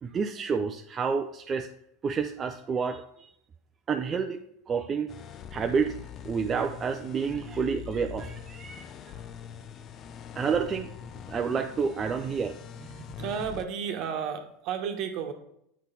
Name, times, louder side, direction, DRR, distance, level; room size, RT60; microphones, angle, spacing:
voice 1, 0.0-1.7 2.0-3.3 3.9-4.4 4.7-5.1 5.5-5.9 6.2-9.1 10.4-10.9 11.3-13.1, right 6 dB, 30° right, 5 dB, 0.5 m, -29 dB
sound 1, 5.1-13.6, left 8 dB, 40° left, 0.4 m, -43 dB
voice 2, 13.0-15.3, right 7 dB, 55° right, 5 dB, 1.1 m, -32 dB
8.3 x 4.0 x 4.0 m, 0.75 s
hypercardioid pair, 85°, 0 cm